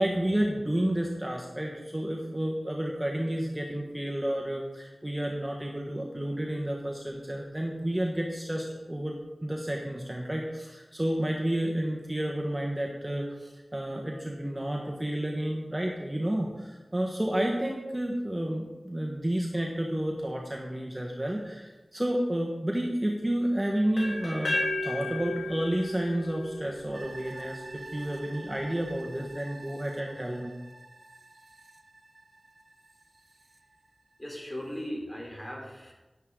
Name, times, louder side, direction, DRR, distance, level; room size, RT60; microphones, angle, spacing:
voice 1, 0.0-30.5, right 1 dB, 15° right, -1 dB, 1.4 m, -31 dB
sound 1, 24.0-27.8, left 1 dB, 65° left, 3.3 m, -34 dB
sound 2, 26.9-34.2 34.6-34.7, right 2 dB, 60° right, 1.3 m, -49 dB
voice 2, 34.2-35.9, equal, 20° left, -1 dB, 3.7 m, -38 dB
11.0 x 10.5 x 3.8 m, 1.1 s
wide cardioid pair, 60°, 0 cm